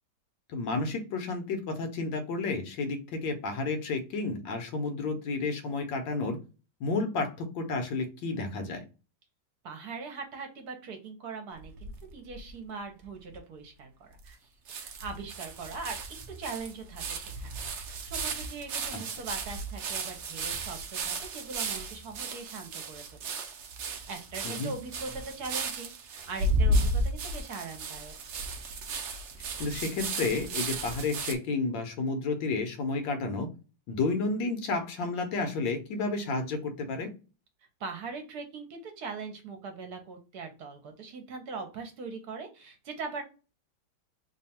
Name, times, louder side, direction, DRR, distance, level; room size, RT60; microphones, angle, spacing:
voice 1, 0.5-6.4 6.8-8.8 18.9-19.0 24.4-24.7 29.6-33.5 33.9-37.1, left 3 dB, 80° left, 6 dB, 1.5 m, -31 dB
voice 2, 9.6-14.4 14.7-16.0 16.4-17.5 17.8-23.0 23.4-23.5 24.1-28.1 37.8-43.2, right 4 dB, 65° right, 4 dB, 1.2 m, -41 dB
sound 1, 11.6-12.5 13.0-13.1 13.3-13.4 14.3-14.4 14.7-31.3, right 2 dB, 85° right, 0.6 m, -34 dB
3.4 x 2.3 x 4.1 m, 0.33 s
omnidirectional pair, 2.0 m